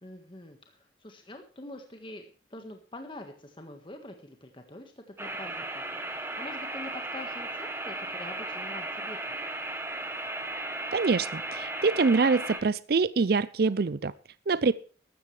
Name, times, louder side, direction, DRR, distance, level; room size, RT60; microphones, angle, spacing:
voice 1, 0.0-2.2 2.5-5.8 6.2-9.4, left 1 dB, 25° left, 4 dB, 1.6 m, -45 dB
sound 1, 5.2-12.6, right 2 dB, 15° right, 1.4 m, -36 dB
voice 2, 10.9-14.1 14.5-14.7, right 4 dB, 55° right, 17 dB, 0.5 m, -25 dB
14.0 x 13.0 x 3.3 m, 0.39 s
head